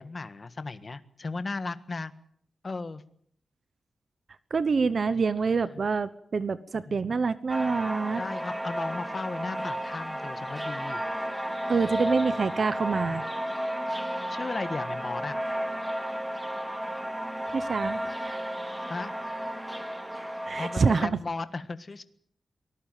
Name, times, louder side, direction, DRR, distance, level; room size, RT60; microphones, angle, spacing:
voice 1, 0.0-2.1 2.6-3.0 5.6-5.8 6.8-7.1 8.1-11.0 13.0-13.2 14.3-15.4 18.9-19.1 20.6-22.0, left 3 dB, 35° left, 12 dB, 1.5 m, -36 dB
voice 2, 4.5-8.2 11.7-13.2 17.5-18.4 20.5-21.2, right 5 dB, 50° right, 15 dB, 1.0 m, -26 dB
sound 1, 7.5-21.0, equal, 5° right, 2.1 m, -33 dB
24.5 x 19.5 x 9.1 m, 0.63 s
wide cardioid pair, 135°, 0 cm